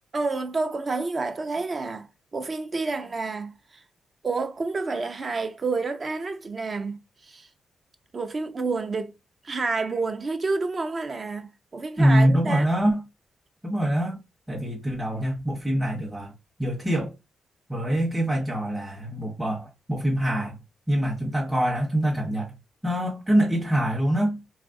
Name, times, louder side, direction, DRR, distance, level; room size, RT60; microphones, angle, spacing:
voice 1, 0.1-2.1 2.3-3.8 4.2-7.5 8.1-9.2 9.4-12.7, right 3 dB, 40° right, 0.5 m, -29 dB
voice 2, 12.0-13.0 13.6-14.2 14.5-16.3 16.6-17.1 17.7-20.6 20.9-22.5 22.8-24.4, equal, 15° right, 0.9 m, -24 dB
3.1 x 2.4 x 2.5 m
cardioid pair, 70°, 0 cm